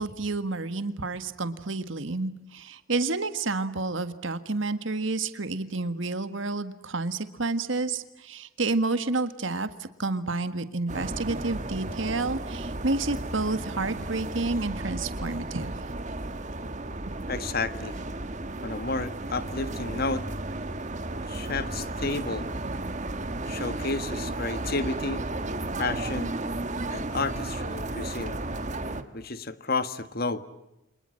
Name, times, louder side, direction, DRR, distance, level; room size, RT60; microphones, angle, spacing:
voice 1, 0.0-15.7, right 3 dB, 70° right, 11 dB, 1.7 m, -30 dB
sound 1, 10.9-29.0, right 2 dB, 35° right, 1.7 m, -33 dB
voice 2, 17.3-18.0 18.6-20.2 21.3-22.5 23.4-25.2 25.8-26.3 26.9-28.4 29.1-30.4, left 3 dB, 45° left, 12 dB, 1.6 m, -31 dB
29.0 x 26.0 x 7.7 m, 0.96 s
head